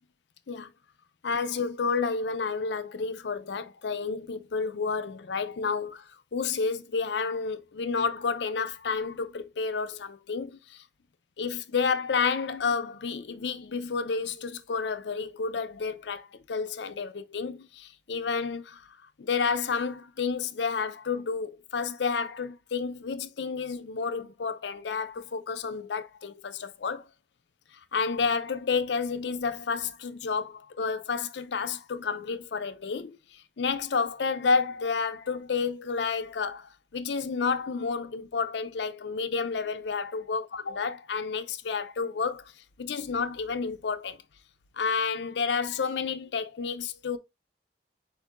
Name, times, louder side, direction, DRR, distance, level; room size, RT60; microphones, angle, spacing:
voice 1, 1.2-10.8 11.4-18.9 19.2-27.1 27.7-42.5 42.8-44.2 44.8-47.2, left 5 dB, 75° left, 0.5 m, -30 dB
4.5 x 4.3 x 2.4 m
head